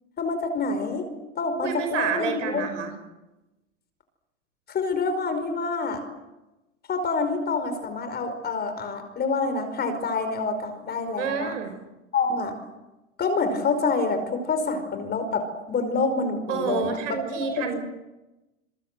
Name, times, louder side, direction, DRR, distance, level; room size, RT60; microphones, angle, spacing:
voice 1, 0.2-1.1 1.3-2.6 4.7-6.1 6.9-11.5 12.1-12.5 13.2-17.2 17.6-17.7, left 4 dB, 25° left, 8 dB, 5.1 m, -27 dB
voice 2, 1.6-2.9 11.2-11.7 16.5-17.8, right 7 dB, 80° right, 7 dB, 5.7 m, -29 dB
28.0 x 22.5 x 8.1 m, 1.0 s
hypercardioid pair, 120°, 37 cm